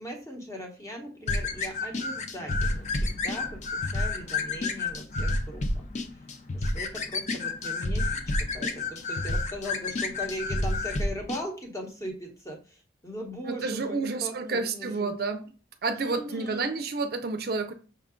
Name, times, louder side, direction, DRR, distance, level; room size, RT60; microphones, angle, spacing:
voice 1, 0.0-5.8 6.1-6.2 6.5-15.1 15.9-16.7, equal, 15° left, 0.9 m, -39 dB
sound 1, 1.3-11.4, left 2 dB, 40° left, 0.5 m, -30 dB
voice 2, 13.4-15.5 15.8-17.7, right 4 dB, 55° right, 0.4 m, -30 dB
5.6 x 2.2 x 3.6 m
head